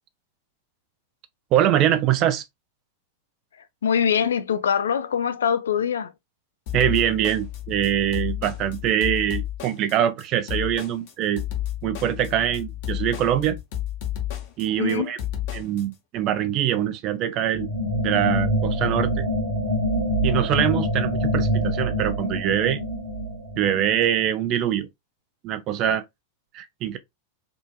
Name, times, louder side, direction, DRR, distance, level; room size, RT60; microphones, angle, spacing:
voice 1, 1.5-2.4 6.7-11.4 11.8-13.6 14.6-15.2 15.5-17.7 18.0-19.3 20.2-22.8 23.6-24.9 25.4-26.0 26.5-27.0, right 11 dB, 35° right, 0.4 m, -23 dB
voice 2, 3.8-6.1 14.8-15.1, left 7 dB, 65° left, 0.3 m, -23 dB
sound 1, 6.7-15.8, left 12 dB, 50° left, 0.8 m, -31 dB
sound 2, 17.5-24.3, equal, 75° right, 1.0 m, -25 dB
3.6 x 2.5 x 2.3 m
figure-of-eight pair, 90°, 0 cm